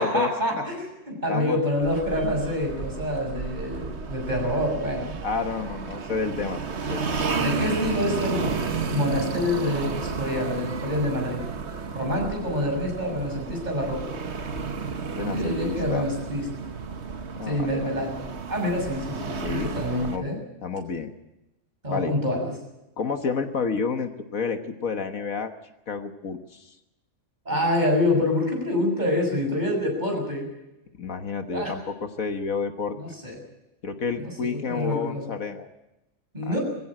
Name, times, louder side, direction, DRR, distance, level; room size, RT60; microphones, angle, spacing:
voice 1, 0.0-5.2 7.3-8.6 8.9-11.4 11.9-14.2 15.3-16.4 17.4-20.4 21.8-22.5 27.5-30.5 31.5-31.8 33.0-33.4 34.2-35.3 36.3-36.6, left 1 dB, 30° right, 1 dB, 6.9 m, -27 dB
voice 2, 1.3-1.6 5.2-6.6 6.9-7.0 15.2-16.1 17.4-17.9 19.4-19.7 20.0-20.3 20.6-21.1 21.9-22.1 23.0-25.5 25.9-26.8 31.0-33.0 33.8-35.7 36.4-36.6, left 5 dB, 70° left, 6 dB, 1.7 m, -30 dB
sound 1, 1.8-20.2, right 5 dB, 50° right, 1.4 m, -32 dB
22.0 x 16.0 x 8.8 m, 0.94 s
omnidirectional pair, 1.5 m